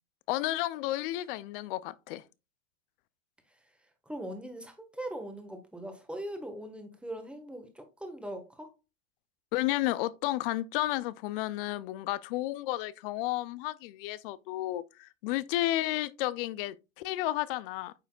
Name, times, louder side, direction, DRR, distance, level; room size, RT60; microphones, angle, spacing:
voice 1, 0.3-2.2 9.5-17.9, left 16 dB, 40° left, 0.5 m, -32 dB
voice 2, 4.1-8.7, right 1 dB, 5° right, 1.4 m, -40 dB
9.1 x 5.5 x 2.4 m
hypercardioid pair, 110°, 41 cm